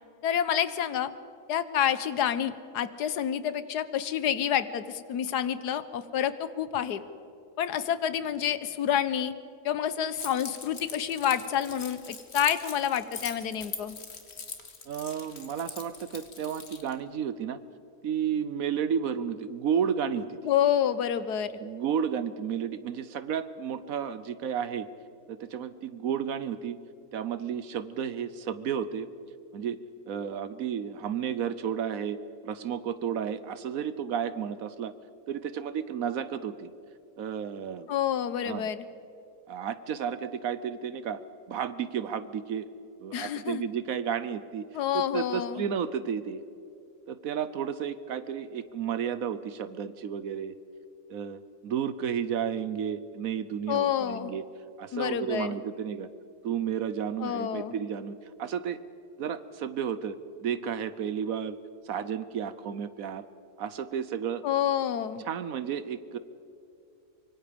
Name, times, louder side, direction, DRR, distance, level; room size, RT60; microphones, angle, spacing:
voice 1, 0.2-1.1 1.5-7.0 7.6-9.3 9.6-14.0 20.4-21.6 37.9-38.9 43.1-43.6 44.7-45.6 53.7-54.3 54.9-55.6 57.2-57.7 64.4-65.2, left 9 dB, 80° left, 14 dB, 1.4 m, -28 dB
Keys jangling, 10.2-16.9, left 4 dB, 40° left, 1.8 m, -42 dB
voice 2, 14.9-17.6 18.0-20.4 21.6-24.9 25.3-26.8 27.1-29.1 29.5-29.8 30.1-34.9 35.3-36.7 37.2-37.9 38.4-38.7 39.5-41.2 41.5-42.7 43.0-44.6 44.9-46.4 47.1-50.5 51.1-54.4 54.8-56.1 56.4-58.8 59.2-61.6 61.9-63.2 63.6-64.4 65.2-66.2, right 8 dB, 65° right, 14 dB, 1.1 m, -32 dB
24.5 x 24.0 x 5.2 m, 2.6 s
omnidirectional pair, 1.7 m